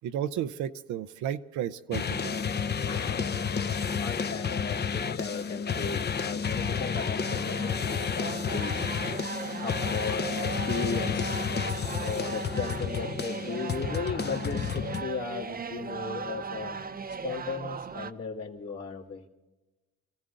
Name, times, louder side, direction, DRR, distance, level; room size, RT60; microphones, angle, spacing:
voice 1, 0.0-2.3, right 10 dB, 80° right, 9 dB, 0.7 m, -33 dB
sound 1, 1.9-15.0, left 6 dB, 35° left, 0.8 m, -31 dB
voice 2, 2.9-3.4 3.7-8.8 9.6-11.4 12.0-16.8 17.2-19.2, left 4 dB, 55° left, -2 dB, 2.7 m, -36 dB
sound 2, 6.5-18.1, right 5 dB, 30° right, 0.8 m, -38 dB
24.5 x 15.0 x 3.8 m, 1.1 s
supercardioid pair, 75°, 29 cm